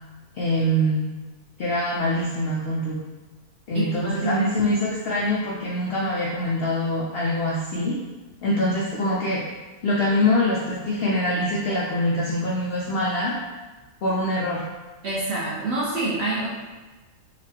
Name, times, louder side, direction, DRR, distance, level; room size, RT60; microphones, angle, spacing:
voice 1, 0.4-1.1 1.6-3.0 3.7-8.0 8.4-9.4 9.8-13.3 14.0-14.7, left 1 dB, 90° left, -4 dB, 0.5 m, -24 dB
voice 2, 3.7-4.5 15.0-16.5, right 2 dB, 65° right, -5 dB, 0.6 m, -26 dB
4.0 x 2.2 x 2.8 m, 1.2 s
omnidirectional pair, 1.6 m